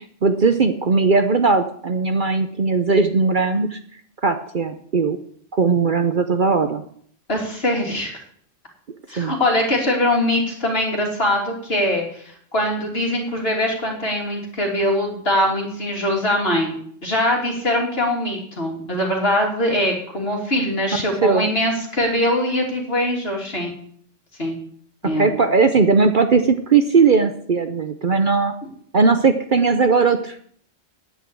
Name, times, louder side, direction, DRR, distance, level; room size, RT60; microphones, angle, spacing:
voice 1, 0.0-3.8 4.2-5.2 5.5-6.8 9.2-9.3 21.2-21.5 25.2-28.5 28.9-30.4, right 4 dB, 45° right, 8 dB, 0.8 m, -18 dB
voice 2, 7.3-8.2 9.1-12.2 12.5-16.7 17.0-23.7 24.4-24.5 25.0-25.3, left 1 dB, 55° left, 0 dB, 3.2 m, -22 dB
9.6 x 8.3 x 8.4 m, 0.62 s
omnidirectional pair, 1.3 m